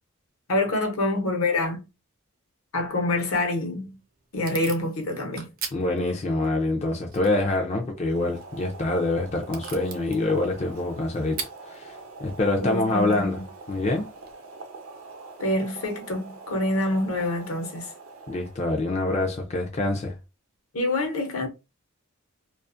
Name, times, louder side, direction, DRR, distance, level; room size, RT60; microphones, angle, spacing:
voice 1, 0.5-1.8 2.7-4.0 4.3-5.5 12.6-13.4 15.4-17.9 20.7-21.5, left 2 dB, 75° left, 0.8 m, -26 dB
Packing tape duct tape / Tearing, 3.5-14.3, right 6 dB, 45° right, 0.5 m, -44 dB
voice 2, 5.7-11.9 12.2-14.1 18.3-20.1, left 2 dB, 30° left, 0.4 m, -26 dB
Boiling, 7.9-18.9, right 3 dB, 75° right, 0.7 m, -44 dB
2.4 x 2.4 x 2.5 m
head